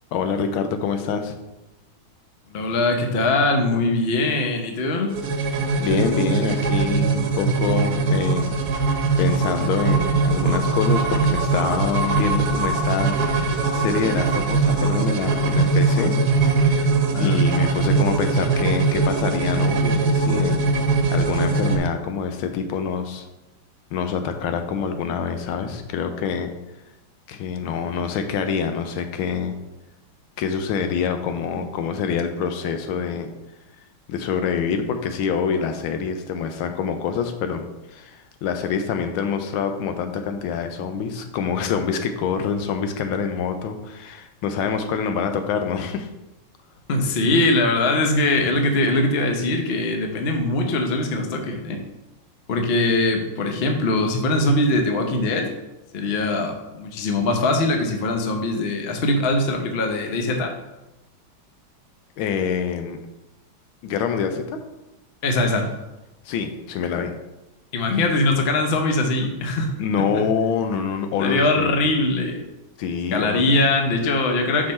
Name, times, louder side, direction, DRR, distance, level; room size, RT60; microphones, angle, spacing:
voice 1, 0.1-1.4 5.8-8.6 9.2-16.1 16.6-16.9 17.2-20.8 21.1-23.3 23.9-26.5 27.3-29.5 30.4-33.3 34.1-46.1 62.2-63.0 63.8-64.6 66.2-67.1 69.8-71.9 72.8-73.5, left 6 dB, 85° left, 7 dB, 1.5 m, -26 dB
voice 2, 2.5-5.1 17.1-17.5 46.9-51.8 52.5-55.6 55.9-60.5 65.2-65.7 67.7-70.3 71.2-72.4 73.1-74.7, left 2 dB, 55° left, 4 dB, 0.6 m, -22 dB
sound 1, 5.1-21.8, right 3 dB, 60° right, 1.2 m, -21 dB
6.2 x 4.7 x 4.2 m, 0.98 s
omnidirectional pair, 2.2 m